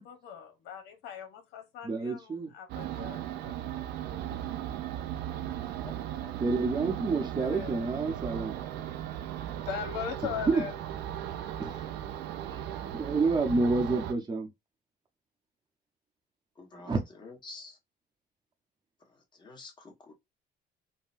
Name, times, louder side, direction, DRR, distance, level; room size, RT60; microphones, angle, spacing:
voice 1, 0.0-3.6 7.4-7.7 9.6-10.7, left 8 dB, 85° left, 0.9 m, -39 dB
voice 2, 1.8-2.5 6.4-8.9 10.2-10.6 11.6-11.9 12.5-12.6 12.9-14.5 16.8-17.0, right 3 dB, 25° right, 0.8 m, -29 dB
sound 1, 2.7-14.1, right 11 dB, 80° right, 0.5 m, -37 dB
voice 3, 5.8-6.5 16.6-17.8 19.1-20.1, left 3 dB, 25° left, 1.3 m, -49 dB
3.8 x 2.1 x 2.5 m
cardioid pair, 110°, 17 cm